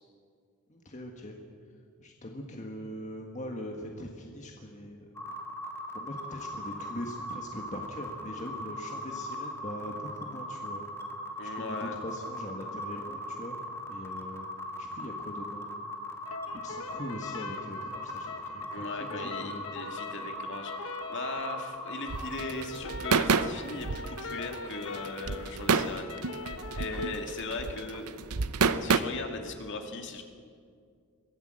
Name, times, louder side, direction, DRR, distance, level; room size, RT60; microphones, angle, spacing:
voice 1, 0.7-1.4 2.0-5.1 5.9-10.8 11.4-13.6 13.9-14.5 14.8-15.7 16.5-19.7, left 1 dB, 35° left, 1 dB, 1.6 m, -41 dB
sound 1, 5.1-22.4, equal, 10° left, 1.7 m, -39 dB
voice 2, 11.4-12.0 18.7-26.1 26.8-28.2 28.6-30.2, left 3 dB, 55° left, 4 dB, 2.3 m, -38 dB
sound 2, 16.3-27.3, left 4 dB, 70° left, 1.4 m, -42 dB
sound 3, 22.1-29.0, right 5 dB, 90° right, 0.8 m, -29 dB
23.0 x 16.0 x 7.8 m, 2.2 s
head